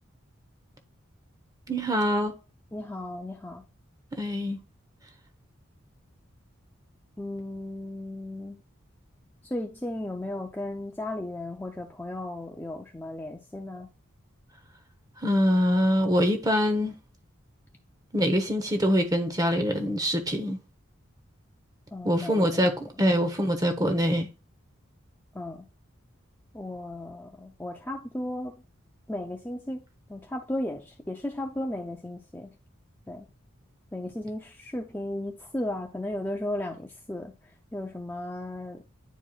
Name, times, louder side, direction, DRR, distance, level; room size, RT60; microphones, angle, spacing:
voice 1, 1.7-2.3 4.1-4.6 15.2-16.9 18.1-20.6 22.0-24.3, equal, 20° right, 1.0 m, -24 dB
voice 2, 2.7-3.6 7.2-8.6 9.4-13.9 21.9-22.6 25.3-25.7 26.5-28.6 29.1-29.8 30.1-32.5 33.1-33.3 33.9-37.3 37.7-38.8, left 1 dB, 10° left, 0.5 m, -35 dB
10.0 x 4.6 x 2.4 m
head